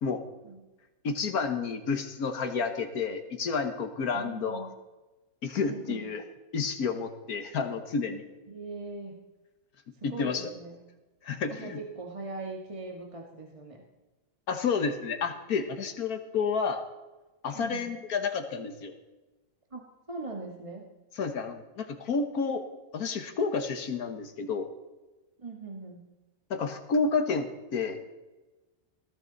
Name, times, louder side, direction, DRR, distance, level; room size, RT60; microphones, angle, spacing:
voice 1, 1.0-4.7 5.4-6.2 6.5-8.2 10.0-10.5 11.2-11.8 14.5-16.8 17.4-18.9 21.2-22.6 22.9-24.7 26.5-28.0, left 5 dB, 80° left, 7 dB, 1.8 m, -30 dB
voice 2, 4.1-4.7 5.6-6.1 8.5-9.2 10.0-10.8 11.5-13.8 17.5-17.9 19.7-20.9 25.4-26.0, right 3 dB, 20° right, 0 dB, 1.7 m, -40 dB
20.0 x 14.5 x 4.0 m, 1.1 s
omnidirectional pair, 1.6 m